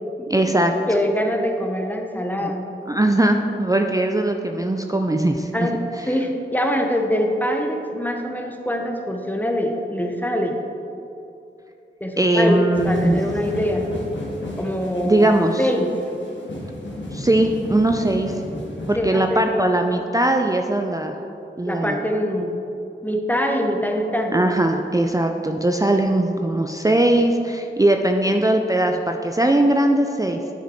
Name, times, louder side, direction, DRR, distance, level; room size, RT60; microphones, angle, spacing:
voice 1, 0.3-0.8 2.4-2.5 2.9-5.8 12.2-13.2 15.0-15.7 17.1-18.4 18.9-21.2 21.6-22.0 24.3-30.4, right 1 dB, 20° right, 4 dB, 0.4 m, -20 dB
voice 2, 0.9-2.6 5.5-5.7 6.0-10.6 12.0-13.8 14.6-15.3 15.6-15.9 18.9-19.4 21.7-22.5 23.0-24.3, equal, 10° left, 2 dB, 0.9 m, -23 dB
sound 1, 12.7-19.0, left 1 dB, 70° left, 1.4 m, -33 dB
10.0 x 4.9 x 4.4 m, 2.7 s
wide cardioid pair, 60°, 20 cm